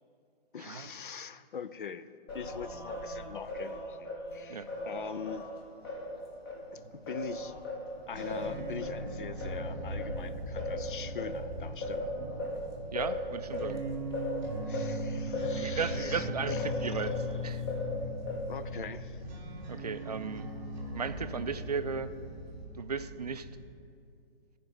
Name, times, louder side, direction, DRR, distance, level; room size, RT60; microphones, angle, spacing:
voice 1, 0.5-5.5 6.7-7.5 8.1-12.1 14.6-17.1 17.6-17.7 18.3-19.2, left 7 dB, 55° left, 13 dB, 0.6 m, -43 dB
Singing, 2.3-6.6 7.1-17.3 17.7-18.7, left 1 dB, 25° left, 1.4 m, -38 dB
sound 1, 4.5-22.7, right 1 dB, 75° left, 3.0 m, -56 dB
sound 2, 8.1-23.7, equal, 10° right, 1.0 m, -39 dB
voice 2, 12.9-13.8 15.5-17.1 17.4-17.6 19.7-20.5 20.9-22.1 22.8-23.5, right 5 dB, 40° right, 11 dB, 0.4 m, -35 dB
15.0 x 5.1 x 8.1 m, 2.4 s
hypercardioid pair, 170°, 31 cm